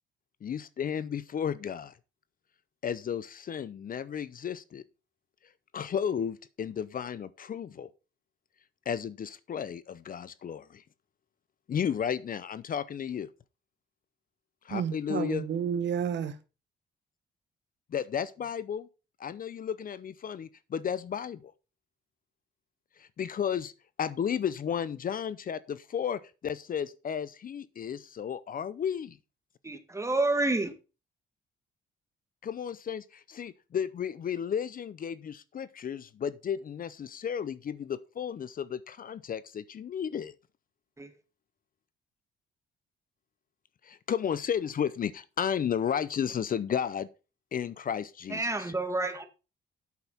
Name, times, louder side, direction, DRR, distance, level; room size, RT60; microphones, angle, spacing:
voice 1, 0.4-1.9 2.8-4.8 5.7-7.9 8.9-10.8 11.7-13.3 14.6-15.5 17.9-18.9 19.2-21.5 23.0-23.7 24.0-29.2 32.4-40.3 43.8-47.1 47.5-48.7, left 8 dB, 45° left, 0.6 m, -33 dB
voice 2, 14.7-16.4, right 8 dB, 65° right, 1.1 m, -31 dB
voice 3, 29.6-30.7 41.0-41.1 48.3-49.3, right 2 dB, 15° right, 1.8 m, -29 dB
8.2 x 6.5 x 5.6 m
cardioid pair, 90°, 20 cm